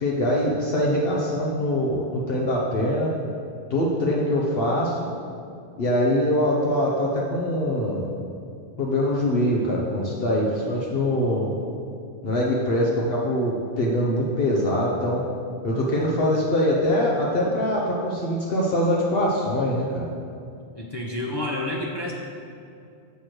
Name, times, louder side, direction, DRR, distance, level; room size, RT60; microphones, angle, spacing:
voice 1, 0.0-3.1 3.7-5.1 5.8-8.1 8.8-11.5 12.2-15.2 15.6-20.1, left 1 dB, 65° left, -3 dB, 1.0 m, -23 dB
voice 2, 20.7-22.1, left 1 dB, 30° left, -2 dB, 0.6 m, -29 dB
6.9 x 6.2 x 4.5 m, 2.5 s
omnidirectional pair, 1.1 m